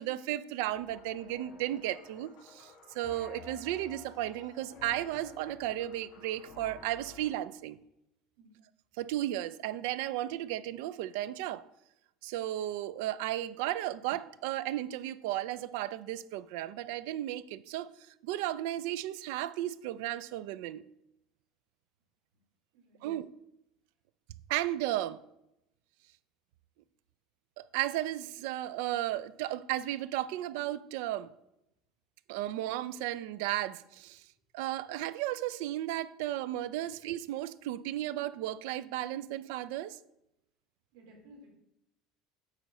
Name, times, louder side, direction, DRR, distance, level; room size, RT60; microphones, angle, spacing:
voice 1, 0.0-7.8 9.0-11.6 12.2-17.9 18.2-20.8 23.0-23.3 24.5-25.2 27.6-31.3 32.3-34.2 34.5-40.0, right 14 dB, 70° right, 0.4 m, -34 dB
sound 1, 0.7-7.4, left 4 dB, 45° left, 1.8 m, -52 dB
voice 2, 22.7-23.1 36.8-36.9 40.9-41.5, right 1 dB, 85° right, 3.3 m, -56 dB
8.9 x 4.1 x 5.5 m
cardioid pair, 180°, 0 cm